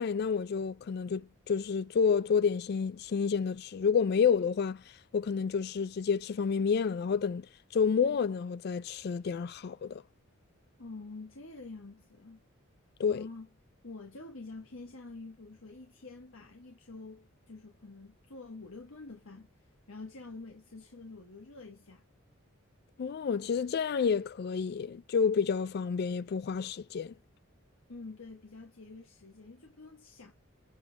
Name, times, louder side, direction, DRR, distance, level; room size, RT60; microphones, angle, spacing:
voice 1, 0.0-4.8 5.1-7.5 7.7-10.0 13.0-13.2 23.0-27.1, left 6 dB, 50° left, 0.3 m, -29 dB
voice 2, 10.8-12.4 13.1-13.5 13.8-19.5 19.9-22.0 27.9-30.3, left 3 dB, 75° left, 1.2 m, -47 dB
8.0 x 5.4 x 2.3 m
head